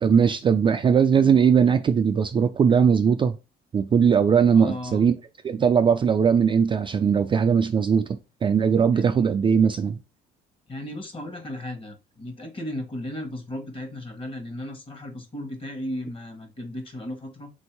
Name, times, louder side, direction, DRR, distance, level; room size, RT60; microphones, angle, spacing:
voice 1, 0.0-3.4 3.7-5.2 5.4-10.0, right 7 dB, 30° right, 0.3 m, -20 dB
voice 2, 4.5-5.1 8.9-9.2 10.7-17.5, left 1 dB, 30° left, 1.2 m, -35 dB
3.7 x 2.6 x 4.5 m
cardioid pair, 110°, 17 cm